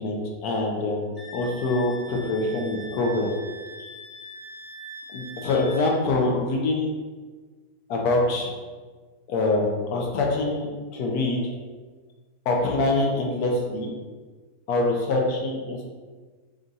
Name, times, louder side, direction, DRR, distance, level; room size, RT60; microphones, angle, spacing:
voice 1, 0.0-3.3 3.8-3.9 5.1-6.9 7.9-8.5 9.3-11.5 12.5-13.9 14.7-15.9, left 2 dB, 75° left, 0 dB, 1.1 m, -25 dB
Wind instrument woodwind instrument, 1.2-6.0, equal, 40° left, 0.8 m, -42 dB
3.7 x 2.5 x 3.9 m, 1.4 s
omnidirectional pair, 1.7 m